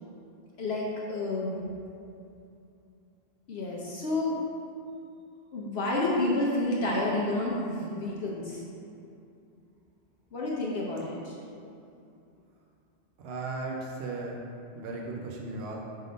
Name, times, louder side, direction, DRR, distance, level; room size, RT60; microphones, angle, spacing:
voice 1, 0.6-1.5 3.5-4.4 5.5-8.6 10.3-11.4, left 2 dB, 70° left, -4 dB, 1.0 m, -29 dB
voice 2, 13.2-14.4 14.7-15.8, right 3 dB, 65° right, -1 dB, 0.9 m, -36 dB
5.6 x 3.8 x 5.0 m, 2.6 s
omnidirectional pair, 1.1 m